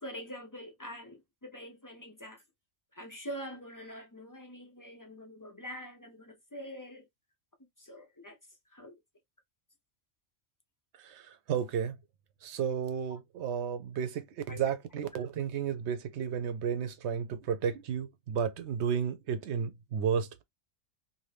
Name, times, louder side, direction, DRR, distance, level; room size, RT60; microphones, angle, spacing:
voice 1, 0.0-2.4 2.9-7.1 7.8-8.4 8.7-9.0 14.5-14.6 15.1-15.2, equal, 30° left, 0.3 m, -45 dB
voice 2, 11.0-12.0 12.4-20.4, right 7 dB, 70° right, 0.8 m, -33 dB
2.6 x 2.5 x 3.2 m
omnidirectional pair, 1.3 m